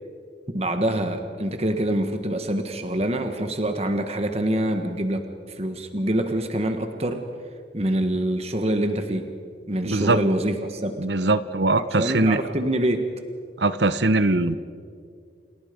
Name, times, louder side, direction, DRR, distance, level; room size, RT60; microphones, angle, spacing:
voice 1, 0.5-7.2 7.7-9.3 9.7-11.0 11.9-13.1, right 1 dB, 35° right, 6 dB, 1.5 m, -25 dB
voice 2, 9.8-10.2 11.0-12.4 13.6-14.6, right 2 dB, 65° right, 13 dB, 1.0 m, -21 dB
29.5 x 28.5 x 5.3 m, 2.2 s
head